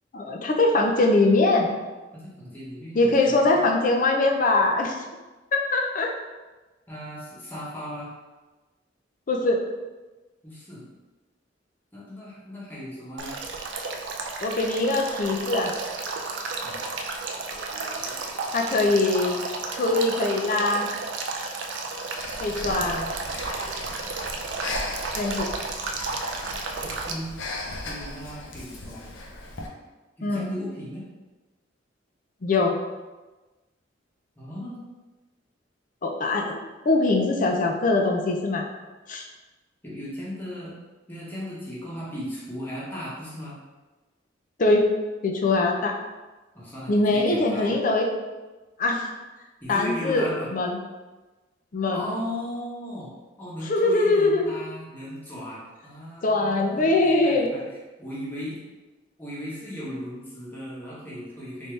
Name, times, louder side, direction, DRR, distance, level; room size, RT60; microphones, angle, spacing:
voice 1, 0.1-1.7 2.9-5.0 5.5-6.1 9.3-9.6 14.4-15.7 18.5-19.5 19.7-20.9 22.4-23.1 25.2-25.5 30.2-30.5 32.4-32.8 36.0-38.6 39.1-39.3 44.6-44.9 45.2-45.9 46.9-48.1 48.8-49.1 49.7-50.3 50.5-50.8 51.7-52.0 53.6-54.5 56.2-57.5, left 2 dB, 45° left, 2 dB, 0.4 m, -22 dB
voice 2, 2.1-3.6 6.9-8.1 10.4-10.8 11.9-13.3 16.6-16.8 26.8-27.4 27.8-29.1 30.2-31.0 34.4-34.8 39.8-40.8 41.1-43.6 46.5-47.8 49.6-50.5 51.9-53.1 53.4-57.6 58.0-58.6 59.2-61.7, equal, 10° left, -8 dB, 1.0 m, -36 dB
Male speech man speaking / Stream / Trickle dribble, 13.2-27.1, right 3 dB, 70° right, 0.4 m, -32 dB
Breathing, 22.1-29.7, left 2 dB, 90° left, 0.6 m, -37 dB
3.5 x 2.7 x 3.1 m, 1.2 s
head